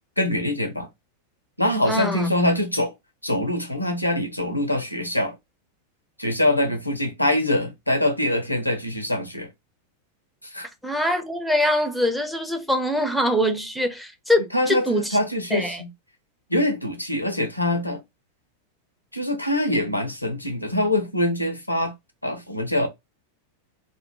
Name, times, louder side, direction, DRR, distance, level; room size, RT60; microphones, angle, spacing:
voice 1, 0.2-0.9 1.6-2.9 3.2-5.3 6.2-9.5 10.4-10.7 14.5-15.9 16.5-18.0 19.1-21.9 22.2-22.9, left 1 dB, 85° left, 0.4 m, -24 dB
voice 2, 1.9-2.3 10.8-15.2 15.5-15.8, left 1 dB, ahead, 0.5 m, -23 dB
2.1 x 2.0 x 2.9 m
figure-of-eight pair, 90°, 0 cm